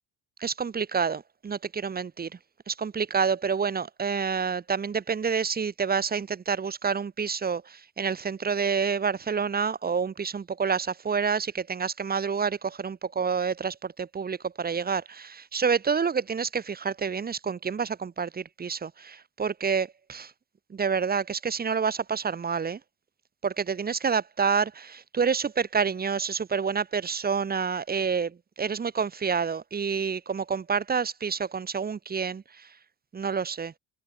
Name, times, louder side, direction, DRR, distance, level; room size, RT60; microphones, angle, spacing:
voice 1, 0.4-2.3 2.7-20.3 20.7-22.8 23.4-32.7 33.1-33.7, right 6 dB, 25° right, 2.0 m, -28 dB
cardioid pair, 155°, 39 cm